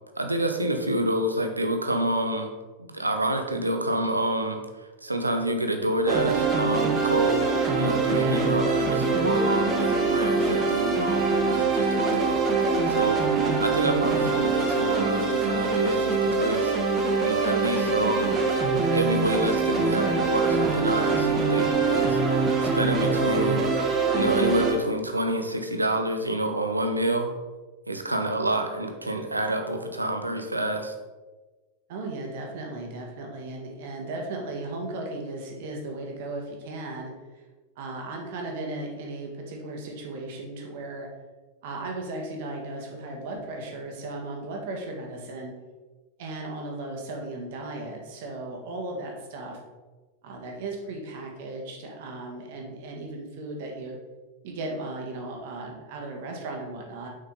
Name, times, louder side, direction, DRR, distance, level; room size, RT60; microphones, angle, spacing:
voice 1, 0.2-2.5 2.8-13.2 13.6-16.7 17.2-18.4 18.9-22.5 22.7-23.7 24.1-27.3 27.9-30.9, right 1 dB, 85° right, 5 dB, 0.8 m, -28 dB
sound 1, 6.1-24.7, right 4 dB, 30° right, 1.4 m, -24 dB
voice 2, 8.1-8.5 31.9-37.1 37.7-41.1 41.6-45.5 46.2-49.6 50.2-54.0 54.4-57.1, right 2 dB, 50° right, 1 dB, 1.6 m, -36 dB
6.6 x 5.5 x 3.9 m, 1.3 s
figure-of-eight pair, 90°, 0 cm